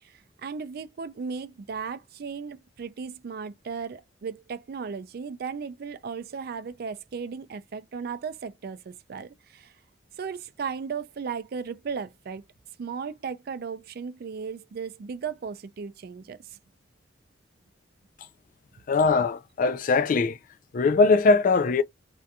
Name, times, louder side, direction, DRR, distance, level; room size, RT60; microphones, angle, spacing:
voice 1, 0.0-9.7 10.2-12.4 12.8-16.4, right 5 dB, 55° right, 0.4 m, -36 dB
voice 2, 18.9-20.4 20.7-21.8, left 4 dB, 50° left, 0.3 m, -21 dB
2.5 x 2.3 x 2.7 m
head